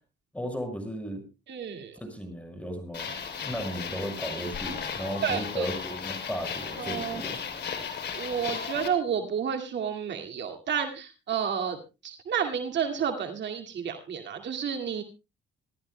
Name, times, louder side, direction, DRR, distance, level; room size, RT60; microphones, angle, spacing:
voice 1, 0.3-1.2 2.0-7.4, equal, 5° left, 6 dB, 6.0 m, -35 dB
voice 2, 1.5-2.0 5.2-5.7 6.8-7.2 8.2-11.8 12.0-15.0, right 7 dB, 65° right, 3 dB, 2.2 m, -30 dB
sound 1, 2.9-8.9, left 6 dB, 60° left, 3.6 m, -35 dB
26.5 x 13.5 x 2.2 m, 0.29 s
cardioid pair, 90°, 20 cm